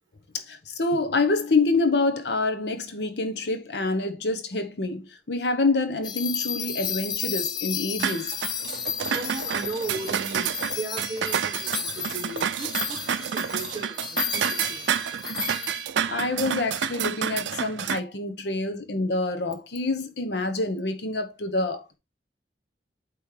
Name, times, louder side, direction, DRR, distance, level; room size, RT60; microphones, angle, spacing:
voice 1, 0.3-8.2 16.1-22.0, left 3 dB, 70° left, 0.9 m, -27 dB
sound 1, 6.0-15.9, left 7 dB, 25° left, 0.4 m, -33 dB
sound 2, 8.0-18.0, right 8 dB, 90° right, 0.4 m, -29 dB
voice 2, 9.1-14.8, right 2 dB, 25° right, 2.4 m, -36 dB
8.6 x 3.1 x 4.7 m
head